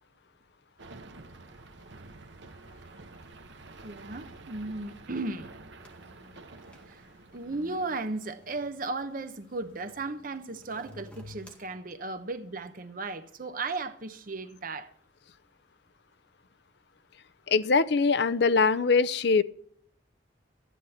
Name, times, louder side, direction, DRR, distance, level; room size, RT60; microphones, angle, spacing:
sound 1, 0.8-8.3, right 3 dB, 70° right, 1.1 m, -49 dB
voice 1, 3.8-5.5 6.9-7.0 7.3-14.9, right 3 dB, 45° right, 0.9 m, -35 dB
sound 2, 5.8-11.6, left 2 dB, 5° left, 2.0 m, -53 dB
voice 2, 17.5-19.4, left 4 dB, 60° left, 0.5 m, -22 dB
14.5 x 10.0 x 4.3 m
head